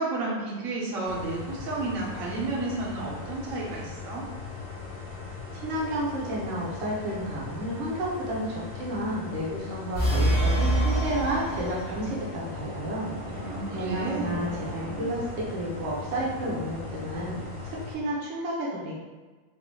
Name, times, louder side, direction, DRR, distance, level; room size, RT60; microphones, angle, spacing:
voice 1, 0.0-4.3 13.4-14.5, right 2 dB, 55° right, -4 dB, 0.9 m, -32 dB
sound 1, 1.0-17.9, left 4 dB, 80° left, 2.2 m, -39 dB
voice 2, 5.6-17.4 17.6-18.9, right 1 dB, 75° right, -5 dB, 1.6 m, -31 dB
sound 2, 9.9-12.2, right 1 dB, 45° left, 1.0 m, -25 dB
sound 3, 10.4-17.7, right 3 dB, 90° right, 1.6 m, -42 dB
5.3 x 2.6 x 3.0 m, 1.3 s
omnidirectional pair, 2.3 m